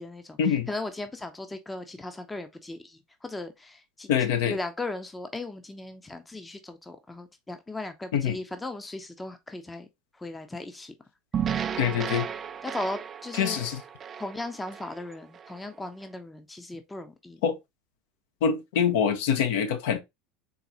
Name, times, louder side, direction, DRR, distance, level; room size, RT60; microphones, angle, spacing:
voice 1, 0.0-0.4 0.7-4.1 4.4-9.9 10.2-10.9 11.8-12.0 12.6-13.6 14.2-17.4, left 2 dB, 10° left, 0.7 m, -37 dB
voice 2, 4.1-4.6 8.1-8.4 11.8-12.3 13.3-13.8 17.4-17.6 18.4-20.0, left 7 dB, 60° left, 0.7 m, -25 dB
sound 1, 11.3-15.6, right 8 dB, 30° right, 0.3 m, -34 dB
3.9 x 3.8 x 2.8 m
figure-of-eight pair, 75°, 0 cm